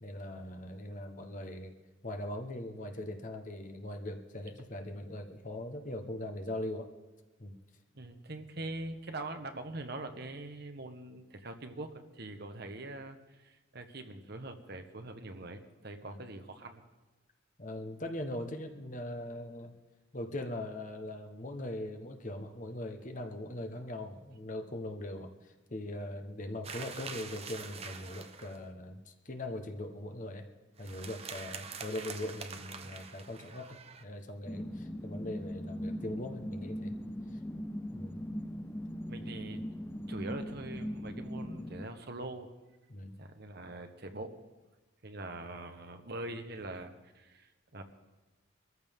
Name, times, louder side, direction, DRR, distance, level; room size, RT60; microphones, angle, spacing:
voice 1, 0.0-1.7 2.0-6.9 7.4-7.5 16.0-16.2 17.6-19.7 20.1-30.4 30.8-37.0 37.9-38.2 42.9-43.2, left 1 dB, 40° left, 5 dB, 1.1 m, -41 dB
voice 2, 7.9-16.8 39.1-39.6 40.1-42.5 43.2-44.4 45.0-47.8, right 2 dB, 50° right, 6 dB, 1.2 m, -43 dB
sound 1, 26.6-28.6 30.8-34.0, right 5 dB, 30° right, 0.8 m, -45 dB
sound 2, 34.5-41.9, equal, 10° left, 0.5 m, -40 dB
22.5 x 14.0 x 3.7 m, 1.1 s
head